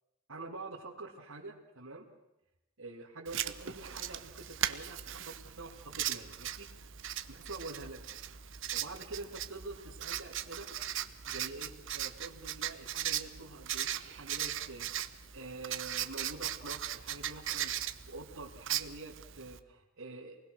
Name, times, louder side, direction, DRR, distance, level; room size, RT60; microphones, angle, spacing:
voice 1, 0.3-2.1 2.8-6.7 7.3-8.2 8.7-10.7 11.3-17.7 18.1-20.4, right 3 dB, 85° right, -5 dB, 3.1 m, -46 dB
Writing, 3.3-19.6, right 11 dB, 65° right, 1.0 m, -38 dB
28.5 x 20.5 x 6.6 m, 0.90 s
head